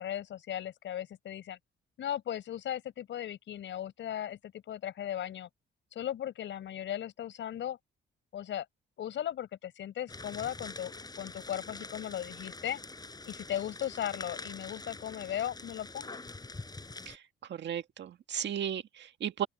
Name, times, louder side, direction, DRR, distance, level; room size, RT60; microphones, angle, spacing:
voice 1, 0.0-1.6 2.0-5.5 5.9-7.8 8.3-8.7 9.0-12.8 13.3-16.2, left 11 dB, 70° left, 5.5 m, -37 dB
sound 1, 10.1-17.2, left 3 dB, 20° left, 5.3 m, -45 dB
voice 2, 17.5-19.5, right 10 dB, 65° right, 1.9 m, -35 dB
open air
cardioid pair, 90°, 20 cm